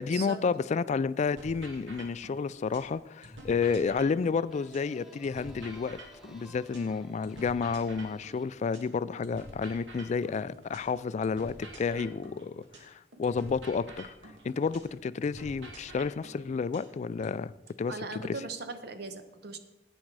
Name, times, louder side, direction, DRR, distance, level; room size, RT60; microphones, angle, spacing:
voice 1, 0.0-6.0 6.3-14.1 14.4-17.5 17.8-18.4, left 5 dB, 40° left, 0.3 m, -31 dB
sound 1, 1.4-2.9 3.2-6.9 7.2-10.9 11.2-14.9 15.2-17.4, right 1 dB, 85° right, 2.1 m, -48 dB
sound 2, 4.5-9.9, right 1 dB, ahead, 1.1 m, -58 dB
voice 2, 17.9-19.6, right 3 dB, 60° right, 1.0 m, -39 dB
10.5 x 8.8 x 4.7 m
head